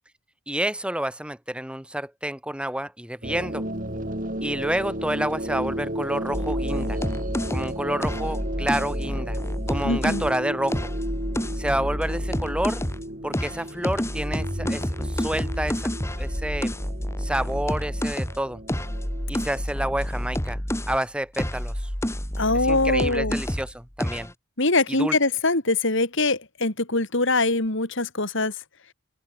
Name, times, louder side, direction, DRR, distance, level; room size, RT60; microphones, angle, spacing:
voice 1, 0.5-3.6 4.4-7.0 7.5-9.4 9.7-10.9 11.6-12.8 13.2-15.9 16.2-16.7 17.2-18.6 19.3-20.6 20.9-21.9 22.5-24.3 25.0-25.2, right 1 dB, 5° right, 1.3 m, -29 dB
sound 1, 3.2-19.6, right 1 dB, 40° right, 7.4 m, -34 dB
sound 2, 6.3-10.3 10.7-13.1 13.3-21.0 21.3-23.7 24.0-24.3, equal, 10° left, 2.2 m, -29 dB
voice 2, 9.8-10.2 22.4-23.4 24.6-28.5, left 2 dB, 55° left, 3.2 m, -23 dB
head